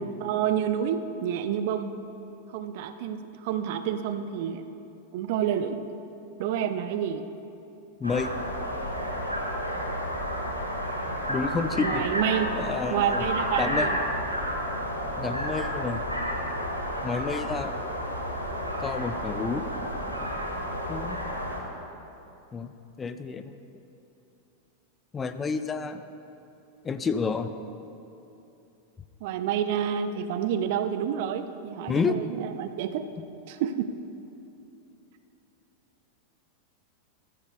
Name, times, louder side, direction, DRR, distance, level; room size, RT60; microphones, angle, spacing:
voice 1, 0.0-2.0 2.5-4.6 5.1-5.8 6.4-7.3 11.8-12.5 12.9-14.0 29.2-33.1 33.5-33.9, right 9 dB, 50° right, 10 dB, 0.6 m, -29 dB
voice 2, 8.0-8.3 11.3-12.0 12.6-13.2 13.6-13.9 15.2-16.1 17.0-17.8 18.8-19.7 20.9-21.2 22.5-22.7 23.0-23.6 25.1-26.0 26.8-27.5 31.9-32.2, left 5 dB, 20° left, 10 dB, 0.6 m, -29 dB
sound 1, 8.0-21.6, equal, 90° right, 2.0 m, -31 dB
21.5 x 13.5 x 2.3 m, 2.9 s
figure-of-eight pair, 90°, 0 cm